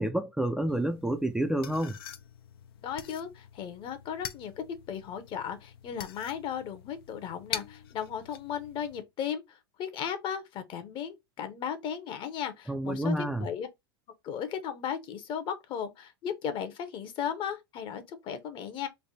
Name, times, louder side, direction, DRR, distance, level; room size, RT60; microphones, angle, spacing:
voice 1, 0.0-2.0 12.7-13.5, right 1 dB, 5° right, 0.4 m, -29 dB
sound 1, 0.7-9.0, left 9 dB, 75° left, 0.5 m, -45 dB
voice 2, 2.8-13.1 13.4-13.7 14.2-18.9, left 8 dB, 40° left, 0.8 m, -36 dB
3.3 x 2.1 x 4.1 m
hypercardioid pair, 105°, 13 cm